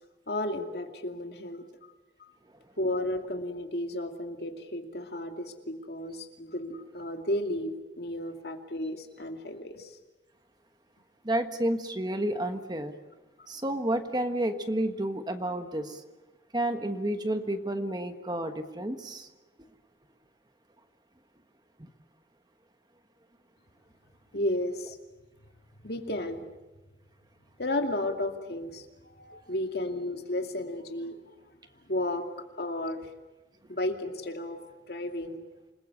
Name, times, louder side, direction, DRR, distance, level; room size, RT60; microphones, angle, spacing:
voice 1, 0.3-1.6 2.2-2.3 2.8-9.9 24.3-25.0 25.8-26.4 27.6-31.3 31.9-32.3 32.6-33.0 33.7-34.6 34.9-35.4, left 1 dB, 60° left, 4 dB, 2.5 m, -33 dB
voice 2, 11.2-12.9 13.5-16.0 16.5-19.3 21.8-21.9, right 1 dB, 20° right, 7 dB, 1.4 m, -30 dB
28.0 x 20.5 x 8.5 m, 1.2 s
head